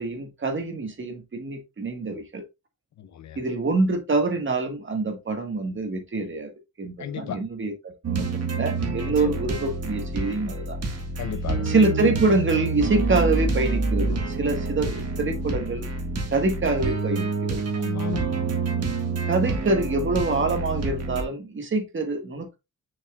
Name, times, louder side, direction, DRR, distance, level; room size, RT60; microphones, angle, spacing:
voice 1, 0.0-2.4 3.4-6.5 6.8-10.8 11.6-15.9 16.3-17.6 19.3-22.6, right 3 dB, 40° right, 1.7 m, -25 dB
voice 2, 3.0-3.4 7.0-7.4 9.1-9.4 11.2-11.7 17.7-18.3, left 9 dB, 65° left, 0.7 m, -34 dB
sound 1, 8.0-21.2, right 3 dB, 55° right, 1.8 m, -27 dB
6.4 x 6.0 x 2.4 m
wide cardioid pair, 135°, 30 cm